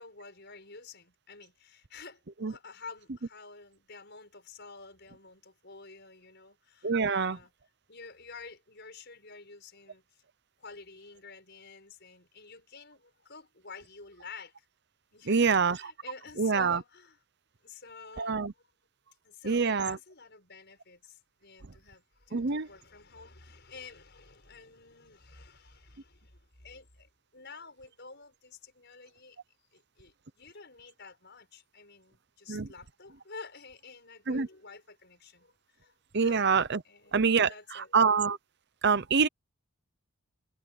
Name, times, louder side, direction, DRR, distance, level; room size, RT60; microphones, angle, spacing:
voice 1, 0.0-7.5 7.9-10.2 10.6-14.7 15.1-17.2 17.6-18.6 19.2-29.4 29.7-36.5 36.8-38.0, left 4 dB, 50° left, 6.5 m, -50 dB
voice 2, 6.8-7.4 15.3-15.8 16.4-16.8 18.2-18.5 19.4-20.0 22.3-22.7 32.5-32.7 34.3-34.5 36.1-36.8 37.1-37.5 37.9-38.4 38.8-39.3, right 5 dB, 50° right, 0.7 m, -25 dB
head